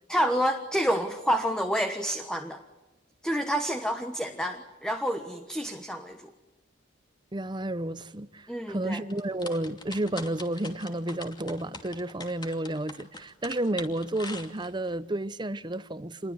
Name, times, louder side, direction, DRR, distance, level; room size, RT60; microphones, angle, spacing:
voice 1, 0.1-2.6 3.2-6.3 8.5-9.0, equal, 5° left, 1.3 m, -28 dB
voice 2, 7.3-16.3, right 1 dB, 25° right, 0.9 m, -31 dB
sound 1, 9.1-14.9, left 3 dB, 25° left, 2.6 m, -42 dB
28.0 x 22.0 x 9.6 m
head